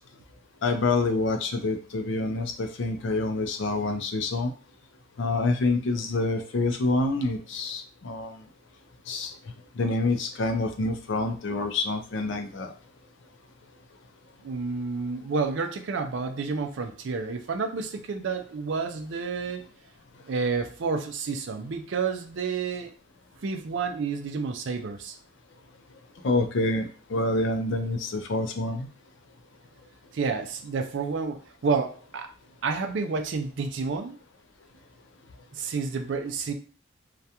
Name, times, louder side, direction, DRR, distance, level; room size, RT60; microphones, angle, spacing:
voice 1, 0.6-4.5 5.2-8.4 9.1-9.3 9.8-12.7 26.2-28.9, left 2 dB, 60° left, 5 dB, 0.4 m, -27 dB
voice 2, 14.4-19.6 20.3-22.9 23.4-25.2 30.1-32.3 32.6-34.2 35.5-36.5, right 4 dB, 60° right, 5 dB, 0.4 m, -30 dB
2.4 x 2.2 x 2.8 m, 0.39 s
head